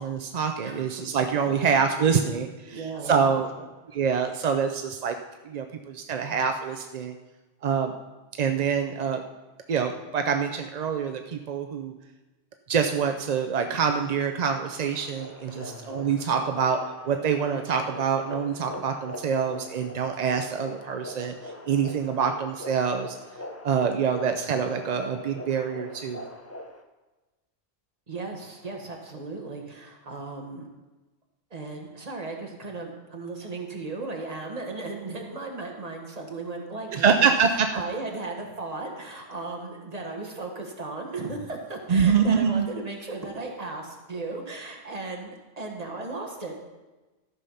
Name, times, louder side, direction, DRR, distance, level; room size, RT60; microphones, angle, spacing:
voice 1, 0.0-3.5 3.9-5.1 5.4-7.1 7.6-7.9 8.4-9.2 9.7-11.9 12.7-16.8 17.1-23.2 23.6-26.2 36.9-37.7 41.9-42.7, right 6 dB, 50° right, 5 dB, 0.5 m, -25 dB
voice 2, 1.4-1.7 2.7-3.6 15.5-15.8 28.1-30.7 31.5-46.7, right 3 dB, 35° right, 1 dB, 1.5 m, -36 dB
sound 1, 14.6-26.8, left 1 dB, 20° left, 0.5 m, -42 dB
13.5 x 5.7 x 5.6 m, 1.1 s
omnidirectional pair, 1.2 m